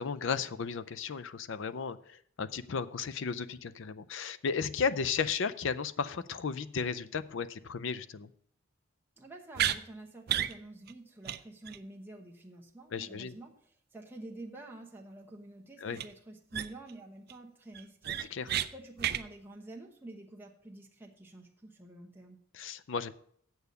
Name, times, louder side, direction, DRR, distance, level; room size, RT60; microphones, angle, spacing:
voice 1, 0.0-8.3 12.9-13.4 15.8-16.0 18.3-18.5 22.5-23.1, left 5 dB, 60° left, 15 dB, 0.5 m, -34 dB
voice 2, 9.2-18.2 18.7-22.4, right 2 dB, 10° right, -1 dB, 1.0 m, -48 dB
sound 1, 9.5-9.8 10.3-10.5 10.9-11.0 11.3-11.4 11.7-11.8 15.9-16.1 16.5-16.9 17.3-17.4 17.7-18.7 19.0-19.2, right 11 dB, 45° right, 0.4 m, -31 dB
8.0 x 6.9 x 6.7 m, 0.64 s
head